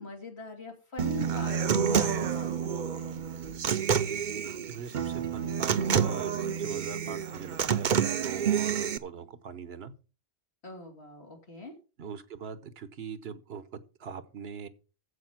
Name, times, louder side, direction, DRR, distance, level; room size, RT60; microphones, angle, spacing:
voice 1, 0.0-3.2 10.6-11.7, left 3 dB, 90° left, 2 dB, 3.3 m, -43 dB
Human voice / Acoustic guitar, 1.0-9.0, right 7 dB, 50° right, 0.8 m, -28 dB
voice 2, 4.7-9.9 12.0-13.7 14.0-14.7, right 6 dB, 75° right, 13 dB, 1.2 m, -42 dB
14.5 x 5.3 x 6.0 m, 0.35 s
omnidirectional pair, 1.1 m